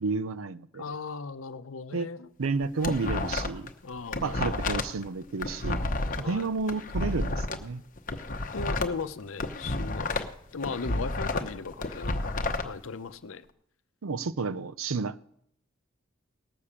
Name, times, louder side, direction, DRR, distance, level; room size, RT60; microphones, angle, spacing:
voice 1, 0.0-0.9 1.9-2.1 2.4-3.7 4.2-5.8 6.2-7.8 14.0-15.2, right 4 dB, 85° right, 0.6 m, -31 dB
voice 2, 0.7-2.3 3.8-4.8 6.2-6.5 8.5-10.3 10.5-12.4 12.6-13.4, left 4 dB, 75° left, 0.7 m, -37 dB
sound 1, 2.4-3.7 4.0-7.6 8.0-10.3 10.6-12.6, left 2 dB, 40° left, 0.9 m, -31 dB
18.5 x 6.7 x 7.2 m
head